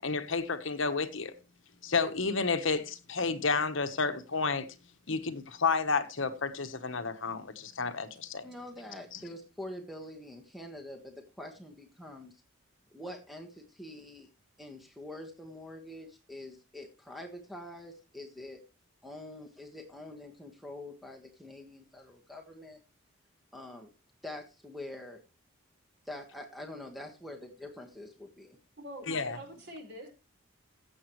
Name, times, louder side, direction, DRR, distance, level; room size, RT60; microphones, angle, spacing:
voice 1, 0.0-1.3 1.8-4.7 5.1-8.5 9.1-9.2 29.1-29.4, left 4 dB, 65° left, 1.2 m, -31 dB
voice 2, 8.4-12.4 12.9-14.3 14.6-18.6 19.0-22.8 23.5-23.9 24.2-25.2 26.0-28.6, left 1 dB, ahead, 1.4 m, -45 dB
voice 3, 28.8-30.1, equal, 55° right, 4.3 m, -45 dB
15.5 x 7.4 x 3.1 m
head